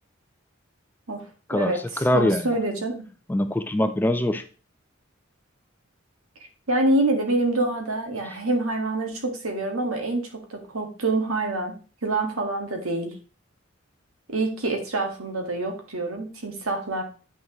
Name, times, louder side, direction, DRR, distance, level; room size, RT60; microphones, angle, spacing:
voice 1, 1.5-2.5 3.3-4.4, left 1 dB, 10° left, 9 dB, 0.4 m, -23 dB
voice 2, 2.1-3.0 6.7-11.7 12.0-13.1 14.3-17.0, right 2 dB, 90° right, 3 dB, 1.8 m, -26 dB
8.7 x 6.3 x 3.1 m, 0.36 s
head